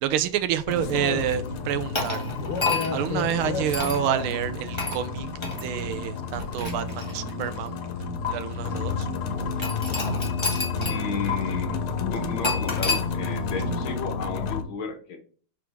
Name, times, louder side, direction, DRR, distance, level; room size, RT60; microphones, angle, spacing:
voice 1, 0.0-2.3 2.9-5.3 5.6-7.7 8.3-9.1, right 10 dB, 80° right, 12 dB, 1.4 m, -28 dB
sound 1, 0.7-14.6, left 5 dB, 90° left, 1.7 m, -31 dB
Fire, 0.7-14.0, right 4 dB, 55° right, 1.2 m, -40 dB
sound 2, 1.9-3.1 3.7-4.0 4.8-5.0 5.4-5.6 6.3-7.5 8.2-8.3 9.6-11.0 11.3-11.4 12.4-13.0, left 3 dB, 15° left, 1.4 m, -29 dB
voice 2, 10.9-15.2, left 5 dB, 65° left, 5 dB, 1.8 m, -33 dB
6.1 x 5.1 x 3.4 m, 0.43 s
omnidirectional pair, 2.4 m